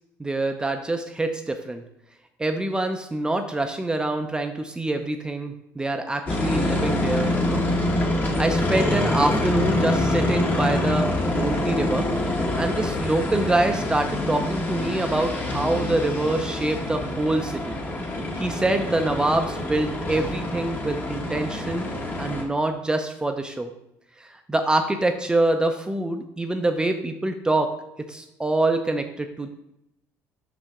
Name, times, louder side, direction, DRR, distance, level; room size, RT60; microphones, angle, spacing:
voice 1, 0.2-1.8 2.4-7.6 8.1-12.0 12.4-17.8 18.4-23.7 24.2-27.7 28.1-29.5, right 2 dB, 15° right, 5 dB, 0.5 m, -25 dB
sound 1, 6.3-22.4, left 1 dB, 30° left, 1.1 m, -26 dB
5.6 x 5.2 x 3.6 m, 0.83 s
cardioid pair, 100°, 6 cm